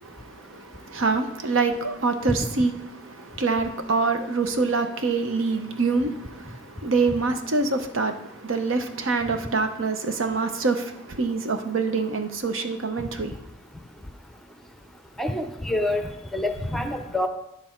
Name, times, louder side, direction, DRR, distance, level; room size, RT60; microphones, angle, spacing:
voice 1, 0.0-2.7 3.0-13.3, right 4 dB, 70° right, 0.8 m, -25 dB
voice 2, 15.2-17.3, left 1 dB, ahead, 0.6 m, -27 dB
9.5 x 7.7 x 4.5 m
head